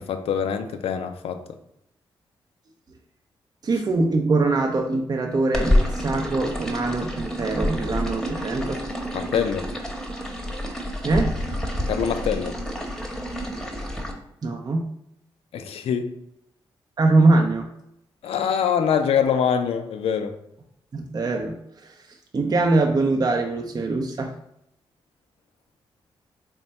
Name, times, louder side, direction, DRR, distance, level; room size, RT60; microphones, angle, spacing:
voice 1, 0.0-1.4 9.1-9.7 11.9-12.6 15.5-16.1 18.2-20.3, left 7 dB, 75° left, 9 dB, 0.4 m, -24 dB
voice 2, 3.6-8.8 11.0-11.4 14.4-14.9 17.0-17.7 20.9-22.0 22.3-24.3, right 3 dB, 40° right, 2 dB, 0.5 m, -22 dB
sound 1, 5.5-14.1, left 1 dB, 5° left, 0.8 m, -28 dB
3.3 x 2.2 x 4.0 m, 0.78 s
cardioid pair, 55°, 10 cm